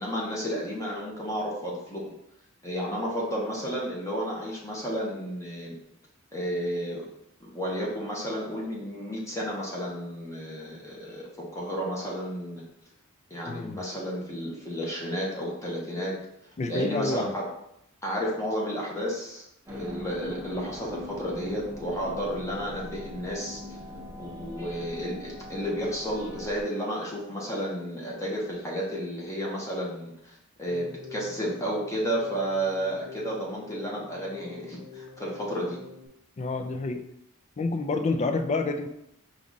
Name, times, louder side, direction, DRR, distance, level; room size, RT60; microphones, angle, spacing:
voice 1, 0.0-2.0 2.6-5.8 6.3-7.0 7.4-12.6 13.3-16.2 16.7-17.4 18.0-23.6 24.2-35.8, equal, 15° left, -4 dB, 1.0 m, -32 dB
voice 2, 13.5-13.8 16.6-17.3 36.4-37.0 37.6-38.9, left 3 dB, 30° left, 7 dB, 0.4 m, -28 dB
sound 1, 19.7-26.6, left 1 dB, 10° right, 0.7 m, -41 dB
Keyboard (musical), 30.7-36.1, left 5 dB, 80° left, 0.7 m, -47 dB
4.8 x 2.4 x 3.9 m, 0.78 s
head